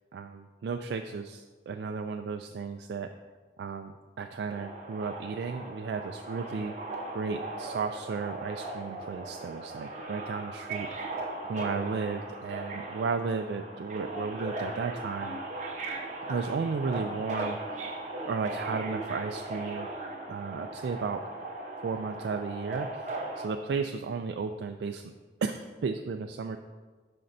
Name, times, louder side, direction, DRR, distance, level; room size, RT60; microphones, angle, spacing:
voice 1, 0.1-3.1 3.6-6.7 7.1-11.1 11.5-15.4 16.2-17.6 18.2-19.9 20.3-21.2 21.8-23.1 23.4-25.0 25.4-26.6, right 5 dB, 70° right, 5 dB, 0.3 m, -34 dB
Subway metro underground, 4.5-23.5, right 2 dB, 40° right, 0.9 m, -38 dB
12.5 x 4.3 x 2.7 m, 1.4 s
head